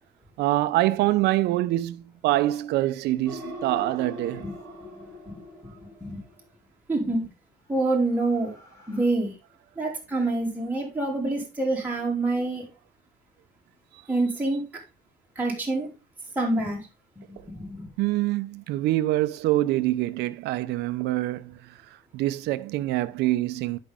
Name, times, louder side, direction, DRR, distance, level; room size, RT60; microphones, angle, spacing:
voice 1, 0.4-4.7 13.9-14.0 18.0-21.8 22.1-23.8, right 16 dB, 85° right, 0.7 m, -25 dB
sound 1, 3.3-6.4 7.9-9.0, left 2 dB, 20° left, 4.8 m, -42 dB
voice 2, 6.9-7.2 7.7-8.5 8.9-9.3 9.8-12.6 14.1-14.6 15.3-15.9 16.3-16.8 17.5-17.9, right 2 dB, 10° right, 3.2 m, -26 dB
10.0 x 5.3 x 3.6 m
cardioid pair, 110°, 17 cm